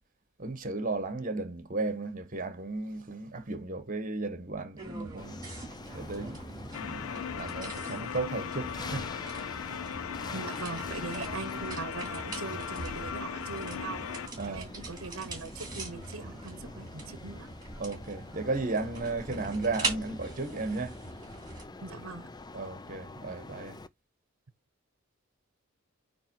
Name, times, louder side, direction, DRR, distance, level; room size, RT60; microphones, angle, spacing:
voice 1, 0.4-5.4 5.9-9.3 11.1-11.2 14.4-14.7 17.8-20.9 22.5-23.8, right 3 dB, 40° right, 1.3 m, -35 dB
sound 1, 4.8-21.6, right 3 dB, 20° right, 3.1 m, -42 dB
sound 2, 5.2-23.9, left 3 dB, 20° left, 0.5 m, -46 dB
sound 3, 6.7-14.3, left 8 dB, 80° left, 0.5 m, -38 dB
voice 2, 10.3-14.1 14.5-17.5 21.8-22.3, right 4 dB, 70° right, 0.9 m, -41 dB
9.1 x 3.2 x 4.6 m
head